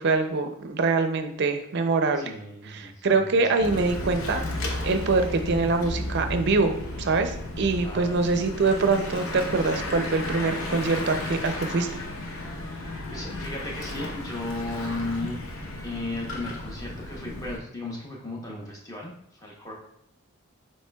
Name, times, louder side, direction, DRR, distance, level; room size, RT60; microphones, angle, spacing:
voice 1, 0.0-2.3 2.7-4.4 4.8-11.9, right 3 dB, 50° right, 7 dB, 0.5 m, -24 dB
voice 2, 2.2-3.8 7.8-8.3 13.1-15.4 15.8-19.7, left 2 dB, 15° left, -2 dB, 0.8 m, -35 dB
Bicycle / Mechanisms, 3.6-17.6, left 1 dB, 75° left, 0.8 m, -34 dB
7.2 x 3.1 x 2.3 m, 0.75 s
head